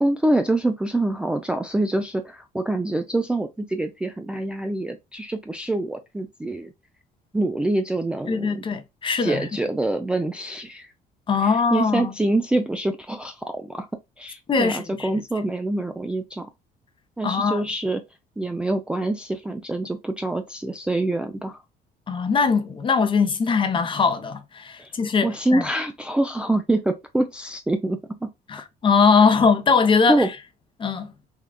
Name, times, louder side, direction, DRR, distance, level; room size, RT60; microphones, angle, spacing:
voice 1, 0.0-6.7 7.3-8.6 9.2-10.9 11.4-13.9 14.2-16.5 17.2-18.0 18.4-21.6 24.8-24.9 25.2-28.3 30.1-30.3, right 2 dB, 5° right, 0.3 m, -25 dB
voice 2, 8.3-9.5 11.3-12.1 14.5-15.1 17.2-17.6 22.1-25.6 28.5-30.3 30.8-31.1, left 5 dB, 30° left, 0.6 m, -21 dB
3.6 x 2.3 x 2.2 m
cardioid pair, 110°, 17 cm